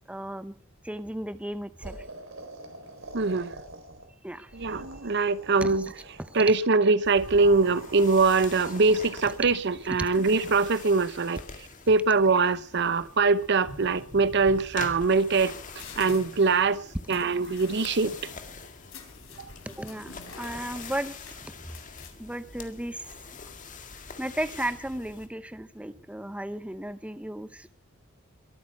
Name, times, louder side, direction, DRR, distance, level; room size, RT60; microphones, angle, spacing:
voice 1, 0.1-0.5 0.8-2.0 4.2-4.8 5.6-5.9 6.2-6.4 10.0-10.1 12.9-13.0 17.1-17.2 19.7-21.1 21.4-21.5 22.2-23.0 24.2-27.7, right 1 dB, 5° right, 0.7 m, -35 dB
sound 1, 1.8-4.1 4.4-6.6 7.1-9.4, right 1 dB, 75° right, 4.1 m, -44 dB
voice 2, 3.1-3.5 4.5-5.9 6.3-11.4 11.9-15.6 16.0-16.8 17.1-18.2, right 4 dB, 60° right, 0.8 m, -23 dB
sound 2, 7.0-25.3, left 4 dB, 40° left, 1.9 m, -45 dB
sound 3, 11.4-11.7 13.3-13.4 13.7-14.2 14.9-22.4, left 5 dB, 85° left, 3.6 m, -49 dB
22.5 x 8.8 x 5.8 m
head